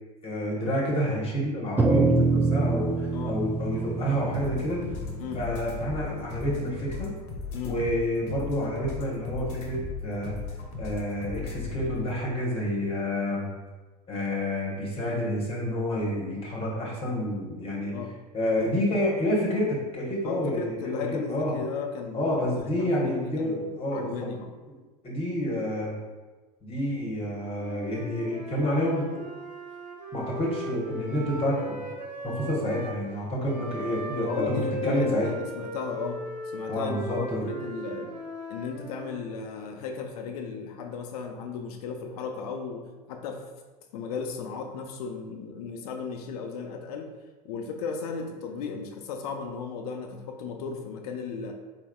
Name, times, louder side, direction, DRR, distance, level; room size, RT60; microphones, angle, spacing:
voice 1, 0.2-4.8 5.3-7.1 7.6-10.3 10.8-13.5 14.1-17.9 18.3-21.6 22.1-24.1 25.0-25.9 26.6-29.2 30.1-31.8 32.2-34.5 34.8-35.3 36.7-37.5, equal, 30° left, -3 dB, 1.2 m, -29 dB
sound 1, 1.8-6.3, right 3 dB, 10° right, 0.4 m, -26 dB
sound 2, 4.3-12.1, left 4 dB, 50° left, 1.0 m, -37 dB
voice 2, 20.2-24.5 33.8-36.2 36.5-38.1 38.5-43.4 43.9-47.1 47.4-51.5, left 5 dB, 65° left, 4 dB, 0.6 m, -35 dB
Wind instrument woodwind instrument, 27.5-33.0 33.4-39.3, equal, 90° right, 0.8 m, -38 dB
4.2 x 3.6 x 2.3 m, 1.2 s
hypercardioid pair, 75°, 21 cm